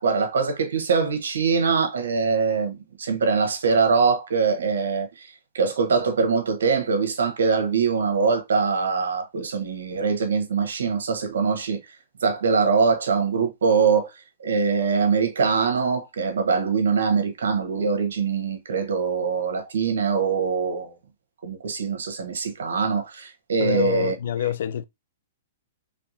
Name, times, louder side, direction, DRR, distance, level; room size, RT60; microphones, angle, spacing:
voice 1, 0.0-5.3 5.5-11.8 12.2-14.1 14.4-20.9 21.4-24.1, right 5 dB, 85° right, 1.0 m, -23 dB
voice 2, 23.6-24.8, left 10 dB, 70° left, 0.4 m, -26 dB
3.6 x 3.3 x 2.6 m
hypercardioid pair, 135°, 0 cm